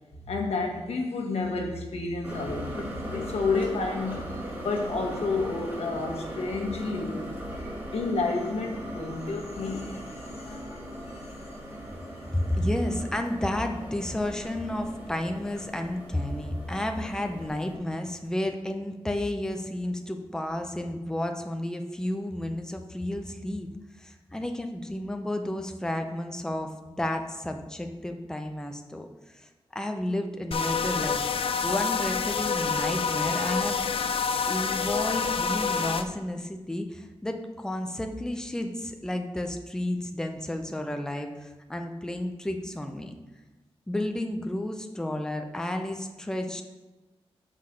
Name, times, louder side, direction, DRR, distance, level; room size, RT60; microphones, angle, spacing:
voice 1, 0.2-4.3 4.6-7.2 7.5-11.2, left 3 dB, 80° left, 1 dB, 1.3 m, -31 dB
sound 1, 2.2-17.8, equal, 20° right, 1.5 m, -39 dB
voice 2, 12.3-23.7 24.0-31.3 31.6-33.8 34.4-43.2 43.9-46.6, left 1 dB, 5° left, 4 dB, 0.6 m, -32 dB
sound 2, 30.5-36.0, left 5 dB, 60° left, 0.4 m, -27 dB
5.9 x 5.8 x 4.9 m, 1.1 s
wide cardioid pair, 135°, 10 cm